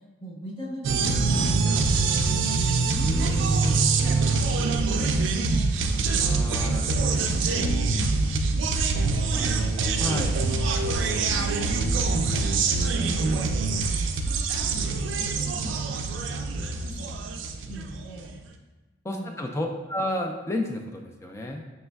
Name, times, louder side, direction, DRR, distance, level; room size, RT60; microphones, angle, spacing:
voice 1, 0.2-2.5 2.8-3.5 4.0-5.8 7.5-8.4 9.3-9.7 10.3-13.2 13.7-18.3 19.1-19.6, left 1 dB, 30° left, -6 dB, 1.0 m, -41 dB
sound 1, 0.8-18.3, right 4 dB, 80° right, 0.4 m, -24 dB
voice 2, 2.9-4.1 6.2-7.4 8.0-8.7 9.3-9.5 10.0-10.4 19.0-21.7, left 1 dB, 15° left, 2 dB, 0.3 m, -32 dB
5.3 x 3.2 x 2.2 m, 1.2 s
head